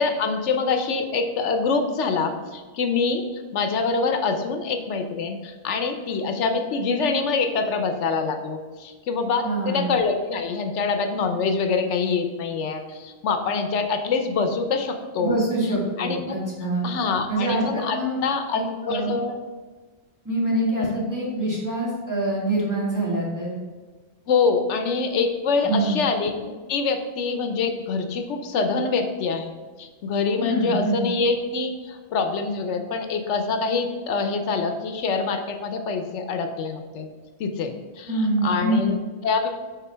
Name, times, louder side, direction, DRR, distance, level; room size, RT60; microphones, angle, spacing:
voice 1, 0.0-15.4 15.6-16.3 16.8-19.4 20.8-21.0 24.3-29.5 29.8-37.1 37.4-39.0 39.2-39.5, left 4 dB, 80° left, 6 dB, 1.0 m, -25 dB
voice 2, 9.4-9.9 15.2-16.9 17.3-18.2 18.5-19.2 20.3-23.6 25.6-26.0 30.4-31.1 38.1-38.9, right 1 dB, 15° right, -5 dB, 1.8 m, -25 dB
6.1 x 3.8 x 5.5 m, 1.3 s
omnidirectional pair, 1.2 m